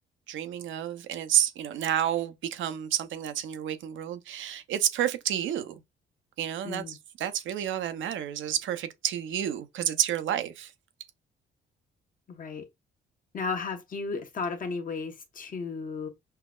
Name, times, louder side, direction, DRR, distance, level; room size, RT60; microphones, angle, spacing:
voice 1, 0.3-5.8 6.4-10.7, right 10 dB, 75° right, 0.6 m, -30 dB
voice 2, 6.6-7.0 12.3-12.7 13.3-16.1, left 4 dB, 45° left, 1.0 m, -34 dB
5.5 x 2.0 x 2.3 m
cardioid pair, 90°, 20 cm